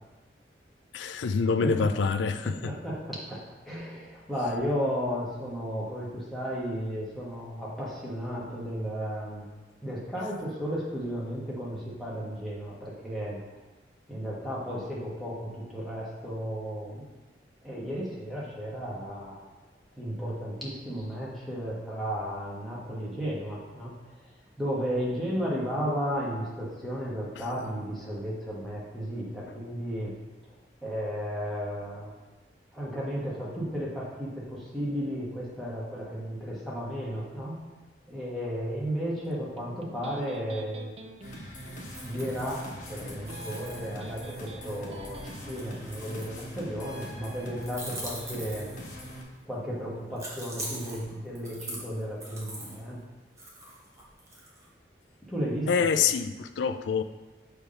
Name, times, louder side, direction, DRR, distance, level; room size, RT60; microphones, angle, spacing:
voice 1, 0.9-2.7 55.7-57.0, left 5 dB, 85° left, 10 dB, 0.4 m, -26 dB
voice 2, 2.4-9.5 9.8-13.4 14.1-17.1 17.6-19.5 20.0-23.9 24.2-24.3 24.6-30.1 30.8-32.1 32.7-37.6 38.1-40.9 42.0-48.7 49.4-53.0 55.3-55.9, equal, ahead, -7 dB, 1.4 m, -34 dB
Electric guitar, 39.3-46.3, right 2 dB, 35° right, 0.4 m, -49 dB
sound 1, 41.2-49.2, equal, 45° left, 1.1 m, -42 dB
Eating Potato Chips, 41.6-42.9 43.2-46.7 47.6-49.0 50.2-52.8 53.4-54.7, right 1 dB, 15° right, 1.1 m, -42 dB
6.3 x 3.4 x 5.5 m, 1.2 s
head